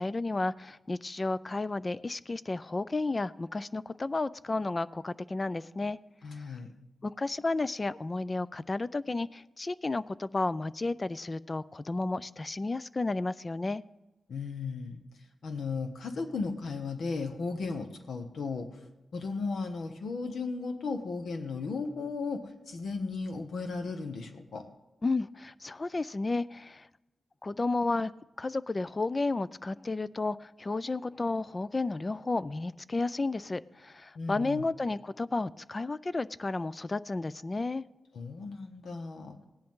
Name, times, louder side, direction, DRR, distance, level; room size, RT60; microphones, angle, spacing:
voice 1, 0.0-6.0 7.0-13.8 25.0-26.9 27.4-28.1 28.4-37.8, left 3 dB, 30° left, 17 dB, 0.4 m, -32 dB
voice 2, 6.2-6.7 14.3-15.0 15.4-18.7 19.1-22.4 22.7-24.7 34.1-34.6 38.1-39.4, left 4 dB, 80° left, 6 dB, 1.0 m, -35 dB
17.0 x 10.5 x 3.7 m, 0.99 s
cardioid pair, 90°, 0 cm